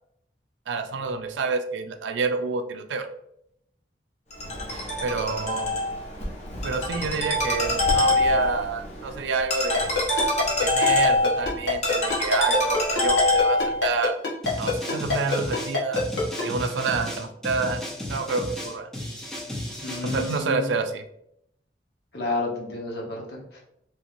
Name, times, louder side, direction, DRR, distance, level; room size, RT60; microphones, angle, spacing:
voice 1, 0.7-3.1 5.0-5.7 6.6-9.9 10.6-14.2 14.6-16.0 16.4-17.8 18.1-18.9 20.0-21.0, right 4 dB, 85° right, 8 dB, 0.4 m, -28 dB
Ringtone, 4.3-13.9, left 2 dB, 35° left, 0.8 m, -25 dB
Ringtone 2, 9.7-16.4, left 5 dB, 90° left, 1.1 m, -24 dB
sound 1, 14.4-20.4, left 1 dB, 5° left, 0.6 m, -34 dB
voice 2, 19.8-20.7 22.1-23.6, left 2 dB, 60° left, -3 dB, 1.0 m, -31 dB
3.1 x 2.9 x 2.5 m, 0.75 s
head